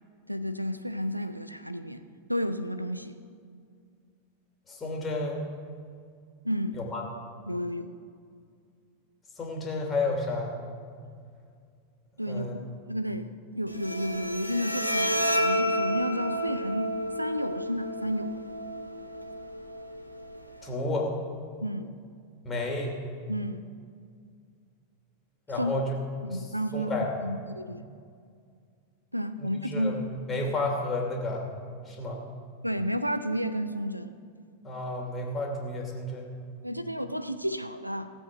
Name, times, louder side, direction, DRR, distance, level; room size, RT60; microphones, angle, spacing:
voice 1, 0.3-2.0 2.3-3.1 6.4-6.8 7.5-8.0 12.2-18.4 21.6-22.0 23.3-23.6 25.6-25.7 26.2-26.9 27.2-27.8 29.1-29.9 32.6-34.2 36.6-38.1, equal, 90° right, 11 dB, 0.5 m, -31 dB
voice 2, 4.7-5.4 6.7-7.0 9.4-10.5 12.3-12.6 20.6-21.1 22.4-23.0 25.5-26.0 26.3-26.5 26.7-27.1 29.4-31.4 31.9-32.2 34.6-36.3, left 2 dB, 20° left, 0 dB, 2.8 m, -31 dB
Bowed string instrument, 13.7-20.7, equal, 90° left, 0.9 m, -31 dB
17.0 x 8.0 x 6.0 m, 2.2 s
figure-of-eight pair, 90°, 0 cm